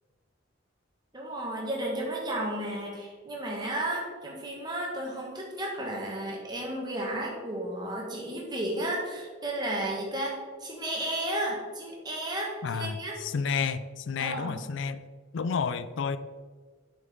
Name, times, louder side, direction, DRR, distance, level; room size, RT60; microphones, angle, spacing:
voice 1, 1.1-13.2 14.2-14.6, right 1 dB, 20° right, -2 dB, 1.5 m, -33 dB
voice 2, 12.6-15.0 15.3-16.2, left 5 dB, 65° left, 14 dB, 0.4 m, -31 dB
7.7 x 5.8 x 3.7 m, 1.5 s
head